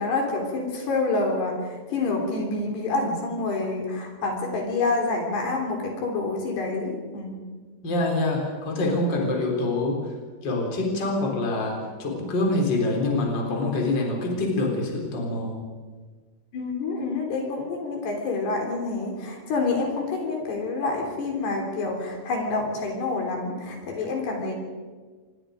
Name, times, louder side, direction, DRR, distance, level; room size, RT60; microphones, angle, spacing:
voice 1, 0.0-7.3 16.5-24.6, left 3 dB, 65° left, 1 dB, 5.5 m, -27 dB
voice 2, 7.8-10.0 10.4-15.6, left 2 dB, 25° left, 0 dB, 4.2 m, -25 dB
27.0 x 21.5 x 5.2 m, 1.4 s
omnidirectional pair, 5.1 m